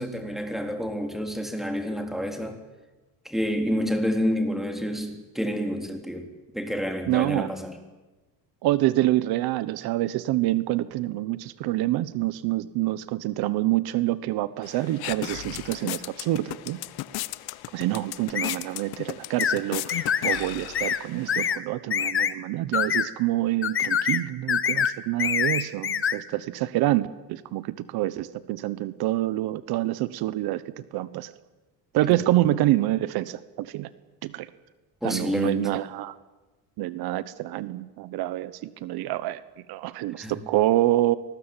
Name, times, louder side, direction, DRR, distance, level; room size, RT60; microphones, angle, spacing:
voice 1, 0.0-2.6 3.2-6.3 6.5-7.8 32.1-32.2 35.0-35.8 40.2-40.3, equal, ahead, 4 dB, 3.9 m, -29 dB
voice 2, 7.1-7.5 8.6-16.8 17.7-30.6 30.9-31.3 31.9-33.9 34.2-34.5 35.0-36.1 36.8-39.4 39.7-41.2, right 16 dB, 75° right, 15 dB, 1.2 m, -26 dB
sound 1, 14.6-21.5, left 17 dB, 75° left, 1.1 m, -36 dB
sound 2, 18.3-18.6 19.4-19.6 19.9-20.4 20.7-21.0 21.3-21.6 21.9-22.3 22.7-23.1 23.6-24.2 24.5-24.9 25.2-26.2, left 8 dB, 35° left, 1.4 m, -25 dB
25.5 x 20.0 x 9.1 m, 1.2 s
cardioid pair, 115°, 38 cm